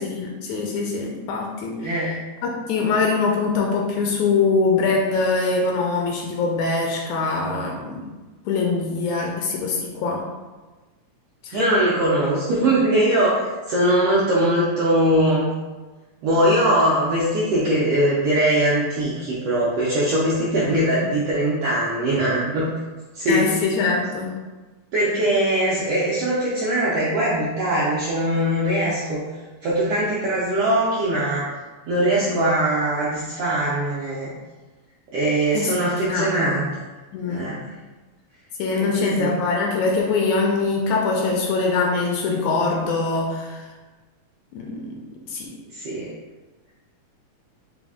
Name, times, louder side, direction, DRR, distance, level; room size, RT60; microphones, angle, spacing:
voice 1, 0.1-2.1 2.4-8.0 8.5-10.3 11.4-11.6 20.9-21.0 23.3-24.3 32.2-32.4 35.5-35.8 36.1-36.6 37.1-37.5 38.6-43.7 44.5-45.0 45.3-45.5, left 4 dB, 80° left, 0 dB, 1.8 m, -23 dB
voice 2, 1.8-2.2 11.5-13.4 13.7-15.5 16.2-22.7 23.1-23.5 24.9-29.2 29.6-31.4 31.9-34.3 35.1-36.6 37.3-37.6 38.7-39.3 45.7-46.1, right 1 dB, 80° right, -7 dB, 1.3 m, -21 dB
4.9 x 2.0 x 3.5 m, 1.2 s
omnidirectional pair, 3.4 m